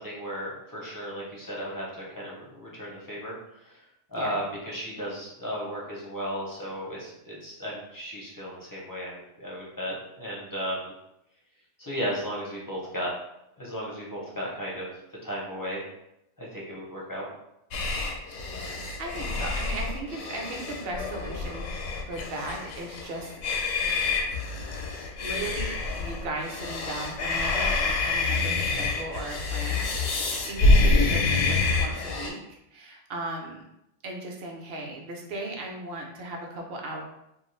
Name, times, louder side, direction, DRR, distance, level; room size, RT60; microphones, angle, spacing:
voice 1, 0.0-3.3 3.6-3.8 4.1-10.9 11.8-13.1 13.6-14.9 15.2-15.9 16.4-17.3, equal, 30° left, -5 dB, 0.4 m, -35 dB
sound 1, 17.7-32.3, left 3 dB, 85° left, 0.9 m, -27 dB
voice 2, 19.0-21.7 22.1-23.3 25.2-33.6 34.0-37.0, right 2 dB, 60° right, 1 dB, 0.7 m, -37 dB
2.5 x 2.4 x 3.1 m, 0.83 s
omnidirectional pair, 1.3 m